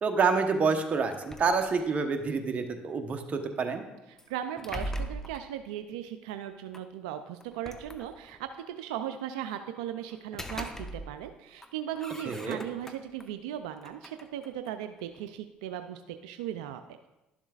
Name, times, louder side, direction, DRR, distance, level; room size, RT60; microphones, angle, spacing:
voice 1, 0.0-3.8 12.3-12.6, right 5 dB, 40° right, 6 dB, 1.0 m, -28 dB
sound 1, 1.1-2.2 4.2-5.5 6.7-6.8 7.4-8.5 10.1-11.3 11.6-13.3 13.7-15.4, equal, 10° left, 0.7 m, -41 dB
voice 2, 4.1-16.8, right 10 dB, 90° right, 8 dB, 0.3 m, -38 dB
11.5 x 7.1 x 2.4 m, 0.98 s
supercardioid pair, 70°, 4 cm